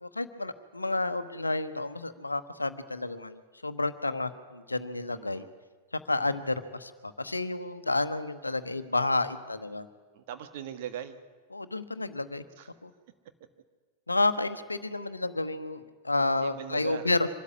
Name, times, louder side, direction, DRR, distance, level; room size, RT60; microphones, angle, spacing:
voice 1, 0.0-5.4 6.1-9.9 11.5-12.4 12.8-12.9 14.1-17.3, left 2 dB, 80° left, 12 dB, 1.0 m, -30 dB
voice 2, 5.1-5.5 10.1-11.2 12.6-12.7 16.4-17.1, right 10 dB, 50° right, 9 dB, 1.7 m, -40 dB
25.0 x 13.5 x 9.6 m, 1.4 s
figure-of-eight pair, 90°, 0 cm